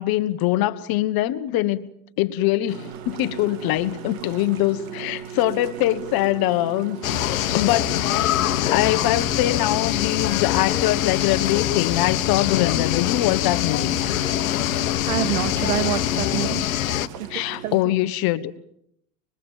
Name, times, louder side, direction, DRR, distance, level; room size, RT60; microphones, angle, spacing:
voice 1, 0.0-1.9 2.2-7.0 7.5-8.4 8.7-14.0 17.3-18.6, left 15 dB, 60° left, 1.7 m, -23 dB
sound 1, 2.7-17.8, right 7 dB, 60° right, 3.0 m, -38 dB
sound 2, 7.0-17.1, left 13 dB, 90° left, 1.3 m, -24 dB
voice 2, 15.1-16.7 17.3-17.9, right 13 dB, 85° right, 1.6 m, -27 dB
24.5 x 22.0 x 7.4 m
hypercardioid pair, 85°, 40 cm